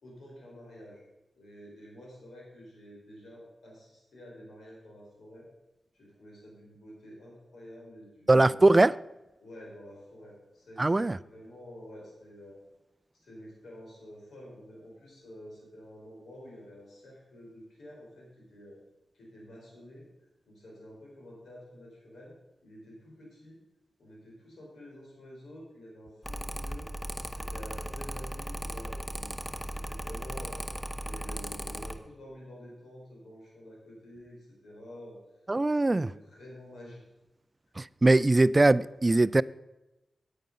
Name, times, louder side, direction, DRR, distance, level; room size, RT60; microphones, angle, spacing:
voice 1, 0.0-1.0 1.4-5.5 5.9-8.6 9.4-12.6 13.1-18.8 19.1-20.0 20.5-22.3 22.6-23.6 24.0-26.9 27.3-35.2 35.7-37.0, equal, 80° left, 4.1 m, -49 dB
voice 2, 8.3-8.9 10.8-11.2 35.5-36.1 37.8-39.4, right 2 dB, 30° right, 0.3 m, -21 dB
Mechanical fan, 26.2-32.0, equal, 10° left, 0.9 m, -37 dB
9.1 x 8.7 x 5.4 m
cardioid pair, 50°, 0 cm